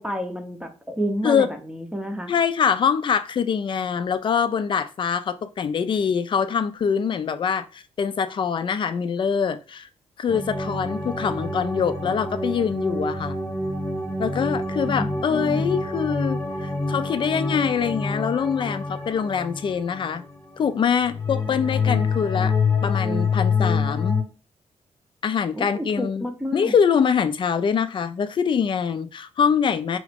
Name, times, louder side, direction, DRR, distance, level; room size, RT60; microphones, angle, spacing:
voice 1, 0.0-2.3 14.9-15.7 25.5-26.7, equal, 5° right, 0.6 m, -30 dB
voice 2, 2.3-9.9 10.2-13.4 14.2-20.2 20.6-22.5 22.8-24.2 25.2-26.3 26.5-30.0, left 7 dB, 45° left, 0.4 m, -24 dB
sound 1, 10.3-20.7 21.0-24.2, left 4 dB, 25° left, 1.0 m, -26 dB
2.9 x 2.5 x 3.3 m
cardioid pair, 110°, 12 cm